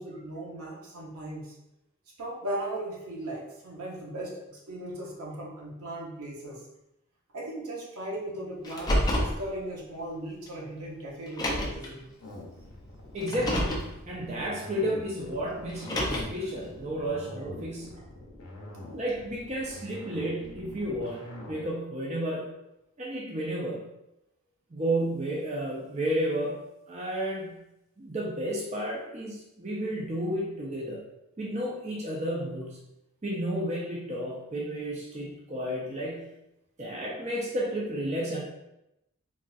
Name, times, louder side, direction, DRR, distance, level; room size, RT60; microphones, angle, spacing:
voice 1, 0.0-1.5 2.2-6.6 7.3-12.1, right 1 dB, 90° right, -3 dB, 0.8 m, -37 dB
Car, 8.6-9.4 10.5-10.6 11.3-11.9 13.2-13.9 15.7-16.4, left 1 dB, 20° left, 0.4 m, -28 dB
sound 1, 12.2-21.7, left 1 dB, 80° left, 0.7 m, -44 dB
voice 2, 13.1-18.0 18.9-22.5 23.0-23.9 24.7-27.6 28.0-31.0 31.4-32.8 33.2-36.3 36.8-38.4, right 1 dB, 30° right, -4 dB, 0.6 m, -32 dB
3.9 x 2.4 x 2.4 m, 0.87 s
head